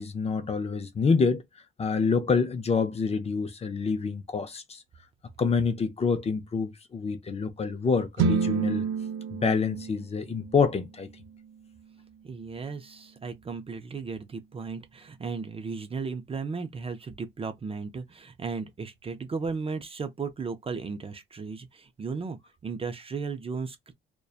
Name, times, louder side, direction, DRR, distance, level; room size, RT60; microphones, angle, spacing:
voice 1, 0.0-1.4 1.8-4.8 5.4-8.8 9.3-11.1, left 5 dB, 30° left, 0.5 m, -27 dB
sound 1, 8.2-12.2, right 5 dB, 80° right, 0.5 m, -30 dB
voice 2, 12.2-22.4 22.6-23.9, right 5 dB, 30° right, 0.4 m, -35 dB
2.6 x 2.2 x 2.3 m
cardioid pair, 90°, 20 cm